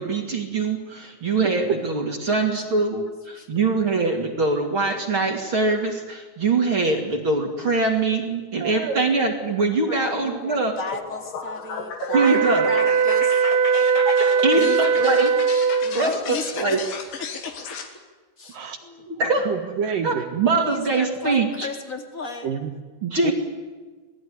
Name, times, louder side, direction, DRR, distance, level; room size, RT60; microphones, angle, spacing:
voice 1, 0.0-10.7 12.1-12.7 14.4-15.3 15.9-16.8 19.1-19.5 20.0-21.7 23.0-23.3, right 3 dB, 35° right, 2 dB, 2.7 m, -23 dB
voice 2, 8.6-9.0 14.0-14.2 18.5-18.8 19.5-20.3 22.4-22.7 23.2-23.3, right 6 dB, 60° right, 6 dB, 2.6 m, -28 dB
voice 3, 9.9-13.4 14.5-15.2 15.8-16.8 17.1-17.8 18.4-19.1 20.6-22.5, left 2 dB, 30° left, 4 dB, 1.5 m, -34 dB
sound 1, 10.9-17.9, left 5 dB, 80° left, 4.7 m, -34 dB
sound 2, 12.1-16.0, right 6 dB, 85° right, 3.4 m, -20 dB
27.5 x 19.5 x 9.8 m, 1.4 s
omnidirectional pair, 5.0 m